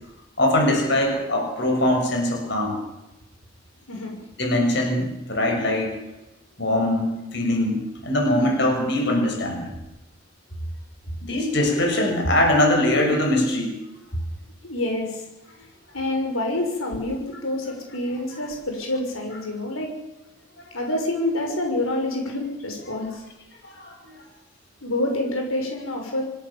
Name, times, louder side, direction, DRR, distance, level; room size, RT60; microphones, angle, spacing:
voice 1, 0.4-2.8 4.4-6.0 6.6-9.7 11.2-13.7 23.7-24.1, left 1 dB, 55° left, 2 dB, 6.4 m, -22 dB
voice 2, 14.6-15.2 15.9-19.9 20.7-23.2 24.8-26.2, left 1 dB, 90° left, 2 dB, 6.5 m, -27 dB
27.0 x 17.5 x 7.2 m, 0.97 s
head